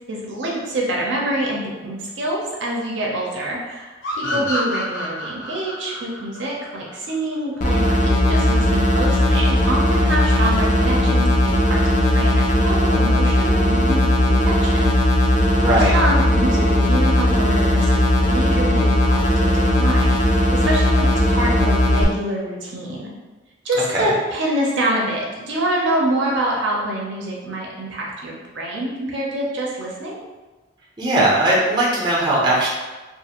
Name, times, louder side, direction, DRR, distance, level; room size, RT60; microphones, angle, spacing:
voice 1, 0.1-15.0 15.7-18.0 18.3-23.1 23.6-30.2, right 1 dB, 65° right, -3 dB, 0.6 m, -26 dB
sound 1, 4.0-7.4, equal, 75° left, 0.7 m, -28 dB
sound 2, 7.6-22.0, left 1 dB, 40° left, 0.4 m, -17 dB
voice 2, 15.5-15.9 23.9-24.1 31.0-32.7, right 1 dB, 20° right, -5 dB, 0.6 m, -19 dB
2.5 x 2.4 x 2.8 m, 1.2 s
head